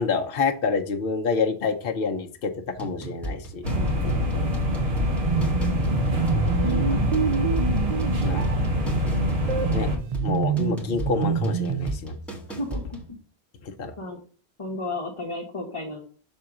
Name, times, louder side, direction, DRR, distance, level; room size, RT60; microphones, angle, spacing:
voice 1, 0.0-2.5 2.8-3.6 8.2-8.4 9.7-9.9 10.2-12.2 13.6-13.9, left 5 dB, 65° left, 3 dB, 0.9 m, -27 dB
sound 1, 2.8-13.1, right 1 dB, ahead, 1.6 m, -36 dB
sound 2, 3.6-10.0, left 1 dB, 75° right, 1.7 m, -25 dB
voice 2, 3.7-4.5 6.3-7.0 12.6-12.8 14.0-14.2 14.6-16.0, left 2 dB, 30° left, 0 dB, 1.1 m, -34 dB
sound 3, 5.1-12.0, right 7 dB, 50° right, 0.5 m, -28 dB
6.3 x 3.7 x 5.8 m, 0.41 s
omnidirectional pair, 1.1 m